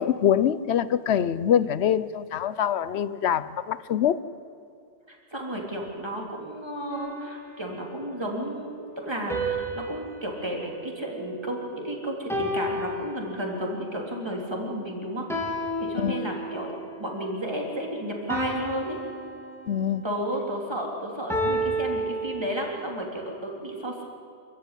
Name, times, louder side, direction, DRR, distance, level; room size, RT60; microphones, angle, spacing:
voice 1, 0.0-4.2 16.0-16.3 19.7-20.0, left 9 dB, 70° left, 1.0 m, -24 dB
voice 2, 5.1-15.3 15.8-19.0 20.0-24.0, right 1 dB, 20° right, 3.6 m, -32 dB
sound 1, 6.9-8.1 9.3-11.7 12.3-13.8 15.3-16.8 18.3-20.2 21.3-22.9, right 1 dB, ahead, 3.5 m, -32 dB
26.0 x 15.0 x 9.9 m
omnidirectional pair, 1.2 m